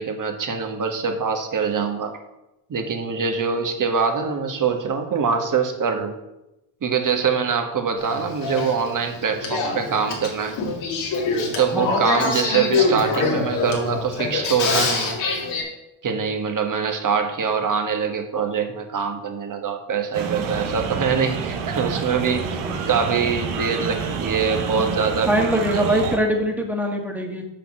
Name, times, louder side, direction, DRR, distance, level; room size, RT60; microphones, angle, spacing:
voice 1, 0.0-2.1 2.7-6.1 6.8-10.6 11.5-15.2 16.0-22.4 22.9-26.0, right 6 dB, 45° right, 5 dB, 1.5 m, -24 dB
Male speech man speaking / Female speech woman speaking / Conversation, 8.0-15.6, left 3 dB, 85° left, 2.4 m, -25 dB
sound 1, 20.1-26.2, right 6 dB, 85° right, 1.3 m, -28 dB
voice 2, 25.3-27.4, right 1 dB, 5° right, 2 dB, 1.8 m, -22 dB
6.8 x 6.0 x 6.1 m, 0.95 s
cardioid pair, 85°, 45 cm